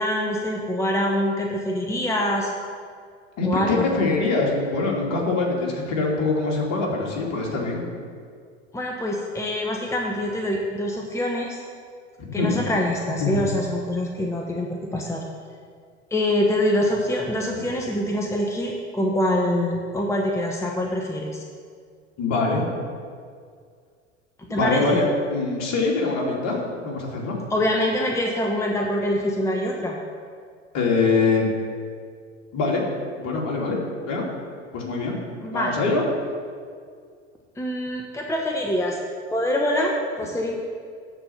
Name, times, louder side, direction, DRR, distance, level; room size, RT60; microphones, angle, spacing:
voice 1, 0.0-2.5 3.4-3.9 8.7-11.6 12.3-15.2 16.1-21.4 24.4-25.0 27.5-30.0 35.4-35.7 37.6-39.0 39.3-40.5, left 1 dB, 10° left, 0 dB, 1.0 m, -25 dB
voice 2, 3.4-7.8 12.2-12.6 13.2-13.4 22.2-22.7 24.5-25.0 25.3-27.4 30.7-31.5 32.5-32.8 33.1-33.8 34.1-34.2 34.7-35.1 35.5-36.0, left 3 dB, 45° left, -1 dB, 2.7 m, -23 dB
13.5 x 4.5 x 6.8 m, 2.1 s
figure-of-eight pair, 75°, 36 cm